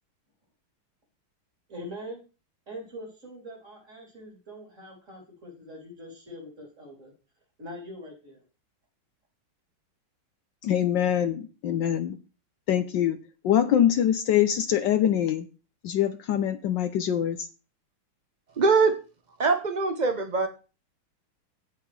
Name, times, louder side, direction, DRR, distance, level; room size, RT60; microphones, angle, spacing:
voice 1, 1.7-2.2 2.7-7.1 7.6-8.4, equal, 35° right, -1 dB, 3.8 m, -43 dB
voice 2, 10.6-12.2 12.7-13.2 13.4-15.5 15.8-17.5, left 10 dB, 70° left, 10 dB, 1.2 m, -24 dB
voice 3, 18.6-18.9 19.4-20.5, right 4 dB, 60° right, 6 dB, 0.4 m, -22 dB
17.0 x 5.7 x 3.3 m, 0.33 s
omnidirectional pair, 2.3 m